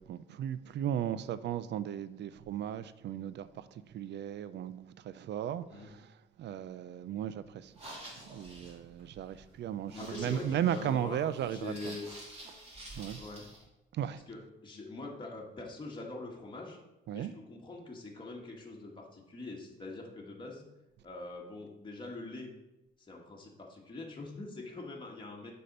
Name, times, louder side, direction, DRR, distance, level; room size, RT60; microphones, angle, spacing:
voice 1, 0.0-7.7 8.2-12.0 12.9-13.2 13.9-14.2 17.1-17.3, right 10 dB, 60° right, 0.4 m, -36 dB
sound 1, 7.6-13.6, right 1 dB, 30° right, 2.6 m, -50 dB
voice 2, 9.9-11.2 11.4-12.1 13.2-13.5 14.3-16.8 17.1-20.7 21.0-22.5 23.0-25.5, left 2 dB, 25° left, 1.4 m, -44 dB
6.6 x 4.3 x 5.2 m
cardioid pair, 90°, 20 cm